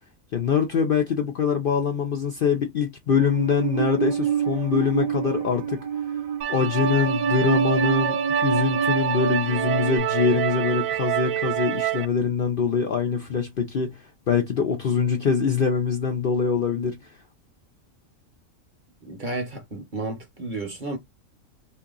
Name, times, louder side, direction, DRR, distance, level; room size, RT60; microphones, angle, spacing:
voice 1, 0.3-5.8 6.5-17.1, left 6 dB, 55° left, 0.6 m, -24 dB
Musical instrument, 3.1-10.0, right 6 dB, 65° right, 0.3 m, -27 dB
sound 1, 6.4-12.1, right 9 dB, 80° right, 1.0 m, -26 dB
voice 2, 19.0-21.0, right 2 dB, 40° right, 0.9 m, -32 dB
2.8 x 2.6 x 3.7 m
omnidirectional pair, 1.5 m